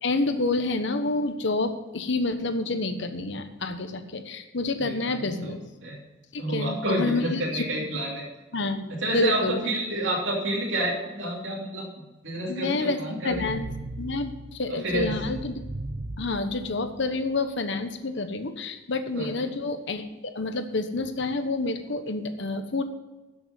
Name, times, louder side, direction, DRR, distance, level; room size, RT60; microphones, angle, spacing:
voice 1, 0.0-5.6 6.3-7.6 8.5-9.6 12.5-13.0 13.2-13.7 14.0-15.6 16.2-22.8, left 3 dB, 70° left, 8 dB, 1.2 m, -28 dB
voice 2, 4.8-5.5 5.8-6.0 6.4-8.2 8.9-11.9 12.2-13.5 14.7-15.2 19.1-19.4, right 1 dB, 75° right, -5 dB, 2.9 m, -29 dB
sound 1, 13.3-17.3, right 2 dB, 55° right, 0.7 m, -37 dB
13.0 x 7.0 x 5.3 m, 1.1 s
head